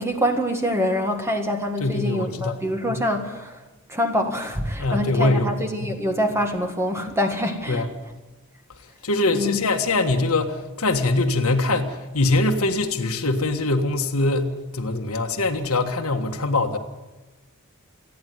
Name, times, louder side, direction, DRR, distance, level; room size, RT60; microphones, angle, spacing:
voice 1, 0.0-3.6 3.9-7.8 9.3-9.6, equal, 10° right, 5 dB, 1.7 m, -25 dB
voice 2, 1.8-2.6 4.8-5.5 7.7-7.9 9.0-16.8, left 2 dB, 80° left, 3 dB, 1.7 m, -23 dB
27.5 x 10.5 x 9.4 m, 1.1 s
head